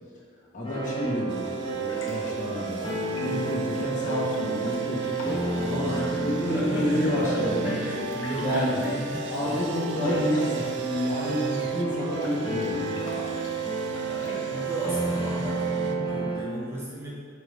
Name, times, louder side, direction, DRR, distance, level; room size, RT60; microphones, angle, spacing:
voice 1, 0.5-2.9 3.2-5.4 5.7-7.7 8.4-8.9 9.3-13.0, equal, 40° left, -6 dB, 1.4 m, -29 dB
sound 1, 0.6-16.4, right 3 dB, 25° left, 1.1 m, -31 dB
Sawing, 1.3-16.0, right 6 dB, 60° right, 0.5 m, -46 dB
sound 2, 1.7-14.4, left 2 dB, 75° left, 1.2 m, -49 dB
voice 2, 5.4-9.3 13.6-17.1, equal, 10° right, -7 dB, 1.0 m, -35 dB
4.8 x 4.7 x 5.2 m, 2.1 s
head